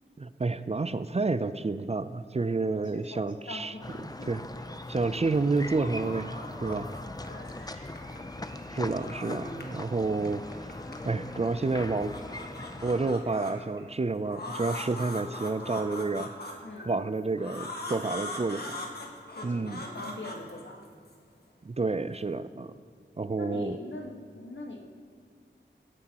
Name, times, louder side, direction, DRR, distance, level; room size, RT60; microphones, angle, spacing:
voice 1, 0.2-3.7 4.3-4.4 4.9-6.9 8.7-10.7 11.1-12.1 12.8-16.3 16.9-18.7 19.4-19.8 21.6-22.7 23.2-23.8, right 3 dB, 35° right, 13 dB, 0.4 m, -29 dB
voice 2, 2.7-4.3 7.3-8.2 16.6-17.0 19.4-20.9 23.4-24.8, left 2 dB, 80° left, 1 dB, 1.4 m, -43 dB
sound 1, 3.8-13.1, left 2 dB, 20° left, 0.5 m, -40 dB
sound 2, 4.6-5.2 5.5-7.5 7.8-9.8 10.1-11.4 11.8-13.5 14.2-16.8 17.4-21.1, left 2 dB, 55° left, 1.6 m, -41 dB
sound 3, 6.2-13.9, right 1 dB, 85° right, 1.5 m, -57 dB
16.5 x 9.9 x 2.9 m, 2.3 s
wide cardioid pair, 45°, 19 cm